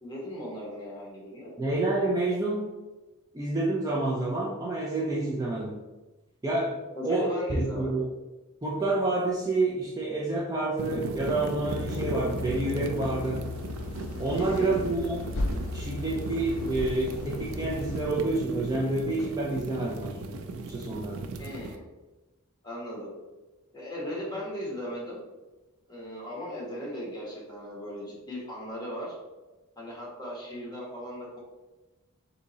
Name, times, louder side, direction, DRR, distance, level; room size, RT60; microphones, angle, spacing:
voice 1, 0.0-1.5 6.9-8.0 14.3-14.8 21.4-21.8 22.6-23.1 23.7-25.2 25.9-29.1 29.8-31.4, equal, 20° left, -4 dB, 1.3 m, -37 dB
voice 2, 1.6-2.7 3.3-5.8 6.4-8.1 8.6-13.4 14.2-15.3 15.7-20.3 20.7-21.2, right 2 dB, 15° right, -4 dB, 0.5 m, -28 dB
Fireplace Fire, 10.8-21.8, right 3 dB, 75° right, 0.4 m, -37 dB
sound 1, 11.6-18.1, left 2 dB, 60° left, 0.5 m, -36 dB
3.6 x 2.8 x 4.0 m, 1.1 s
head